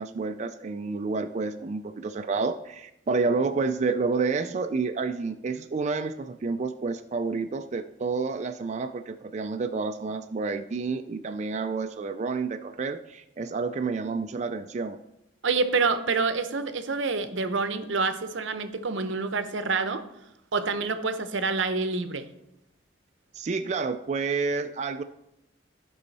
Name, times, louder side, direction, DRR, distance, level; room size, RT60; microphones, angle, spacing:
voice 1, 0.0-15.0 23.3-25.0, right 4 dB, 40° right, 0.4 m, -29 dB
voice 2, 15.4-20.1 20.5-22.3, right 4 dB, 85° right, 0.8 m, -27 dB
14.5 x 5.6 x 4.1 m
head